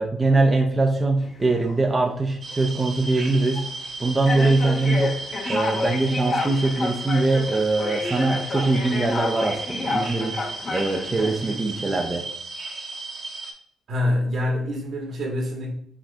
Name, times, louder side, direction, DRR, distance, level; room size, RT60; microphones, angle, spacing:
voice 1, 0.0-3.6 4.0-5.2 5.5-10.4 10.7-12.3, right 2 dB, 25° right, 0.6 m, -22 dB
sound 1, 1.2-1.8 2.5-2.7 3.5-3.7 4.3-11.5, left 3 dB, 45° left, 0.8 m, -30 dB
sound 2, 2.4-13.5, right 2 dB, 45° right, 1.2 m, -35 dB
voice 2, 13.9-15.7, left 1 dB, 65° right, 1.6 m, -25 dB
6.0 x 4.0 x 2.2 m
cardioid pair, 90°, 0 cm